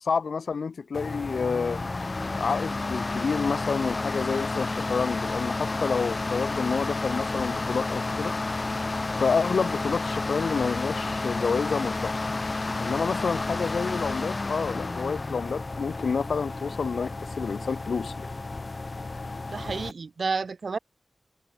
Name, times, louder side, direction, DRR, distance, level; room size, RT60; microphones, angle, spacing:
voice 1, 0.0-1.8 2.3-8.3 9.2-12.1 12.8-18.3, left 5 dB, 85° left, 0.6 m, -29 dB
sound 1, 0.9-19.9, left 3 dB, 50° left, 1.1 m, -31 dB
voice 2, 19.5-20.8, right 4 dB, 75° right, 2.0 m, -30 dB
cardioid pair, 40°, 0 cm